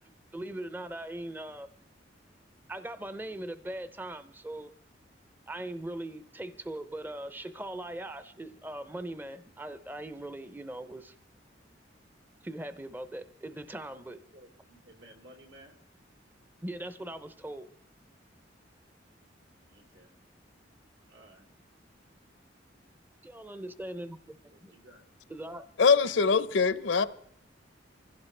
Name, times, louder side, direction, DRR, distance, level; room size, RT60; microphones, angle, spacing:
voice 1, 0.3-1.7 2.7-4.7 5.5-11.1 12.4-14.2 16.6-17.7 23.2-24.4 24.6-24.7 25.3-25.7, right 1 dB, 10° right, 0.5 m, -40 dB
voice 2, 14.3-15.8 19.7-20.1 21.1-21.5 24.5-25.0, right 1 dB, 85° right, 3.2 m, -55 dB
voice 3, 25.8-27.1, left 5 dB, 80° left, 0.7 m, -23 dB
24.5 x 16.0 x 3.3 m
head